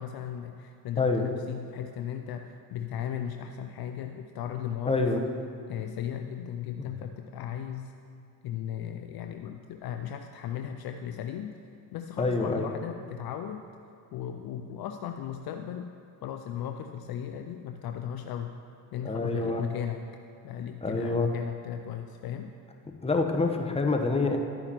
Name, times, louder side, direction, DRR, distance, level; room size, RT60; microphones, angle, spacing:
voice 1, 0.0-5.2 5.7-7.9 8.4-11.6 11.9-13.6 14.1-15.9 16.2-18.6 18.9-20.0 20.4-22.6, left 9 dB, 50° left, 6 dB, 0.6 m, -36 dB
voice 2, 1.0-1.3 4.9-5.2 6.8-6.9 12.2-12.7 19.0-19.6 20.8-21.3 23.0-24.4, left 3 dB, 10° left, 3 dB, 1.0 m, -27 dB
12.0 x 9.6 x 3.0 m, 2.4 s
hypercardioid pair, 55°, 47 cm